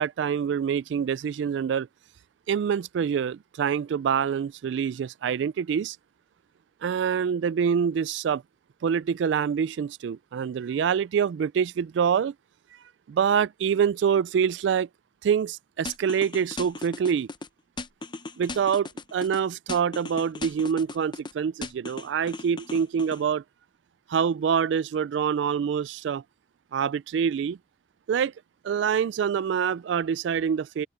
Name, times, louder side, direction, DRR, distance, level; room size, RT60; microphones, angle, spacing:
voice 1, 0.0-1.9 2.5-6.0 6.8-8.4 8.8-12.3 13.1-14.9 15.2-17.3 18.4-23.4 24.1-26.2 26.7-27.6 28.1-28.3 28.6-30.9, right 7 dB, 70° right, 0.3 m, -26 dB
sound 1, 15.9-17.5 17.8-19.4 19.7-21.3 21.6-23.2, left 3 dB, 25° left, 0.8 m, -37 dB
head